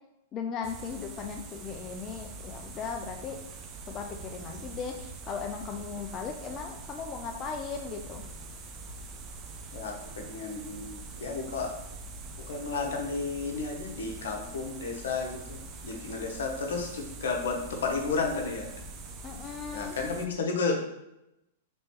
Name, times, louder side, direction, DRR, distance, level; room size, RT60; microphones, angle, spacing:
voice 1, 0.3-3.4 3.9-8.2 19.2-20.0, left 6 dB, 30° left, 3 dB, 0.4 m, -37 dB
sound 1, 0.6-20.3, right 3 dB, 30° right, 0.4 m, -44 dB
voice 2, 9.7-11.7 12.5-18.7 19.7-20.8, left 4 dB, 70° left, 1 dB, 0.8 m, -32 dB
3.1 x 3.0 x 3.0 m, 0.88 s
hypercardioid pair, 110°, 0 cm